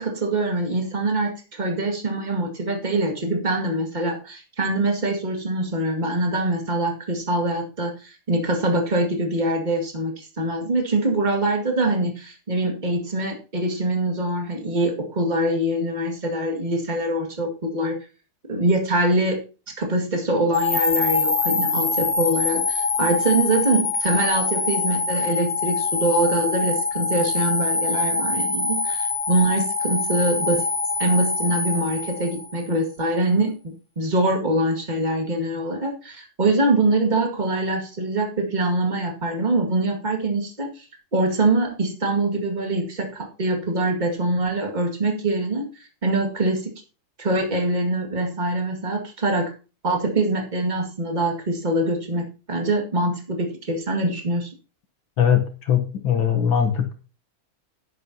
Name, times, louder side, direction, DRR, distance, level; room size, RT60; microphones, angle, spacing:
voice 1, 0.0-18.0 18.5-19.4 19.8-30.6 31.0-40.8 41.1-46.7 47.2-49.5 49.8-54.5, right 2 dB, 20° right, 2 dB, 2.0 m, -24 dB
sound 1, 20.5-32.7, left 4 dB, 50° left, 0.4 m, -24 dB
voice 2, 55.2-56.9, left 8 dB, 70° left, 6 dB, 1.9 m, -21 dB
11.0 x 11.0 x 2.8 m, 0.34 s
omnidirectional pair, 2.4 m